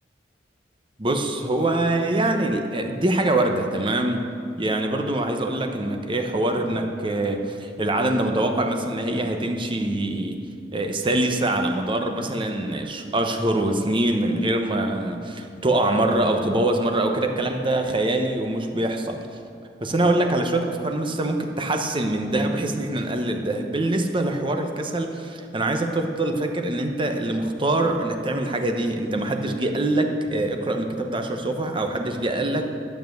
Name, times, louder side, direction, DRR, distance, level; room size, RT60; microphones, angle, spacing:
voice 1, 1.0-4.2 4.6-10.4 10.7-19.2 19.8-32.8, right 1 dB, 30° right, 5 dB, 0.9 m, -24 dB
12.0 x 7.2 x 7.8 m, 2.3 s
head